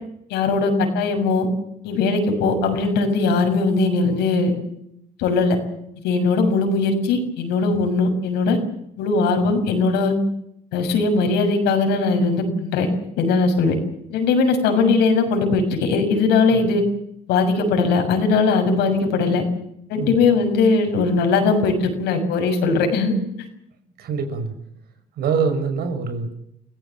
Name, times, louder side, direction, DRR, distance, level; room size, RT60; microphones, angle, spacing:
voice 1, 0.3-1.5 1.8-4.5 5.2-5.6 6.0-8.6 9.0-10.1 10.7-12.9 13.2-13.7 14.1-16.8 17.3-19.4 19.9-23.1, left 4 dB, 90° left, 5 dB, 6.9 m, -19 dB
voice 2, 24.0-24.5 25.2-26.4, right 5 dB, 70° right, 9 dB, 6.3 m, -24 dB
29.5 x 18.0 x 7.6 m, 0.76 s
cardioid pair, 110°, 17 cm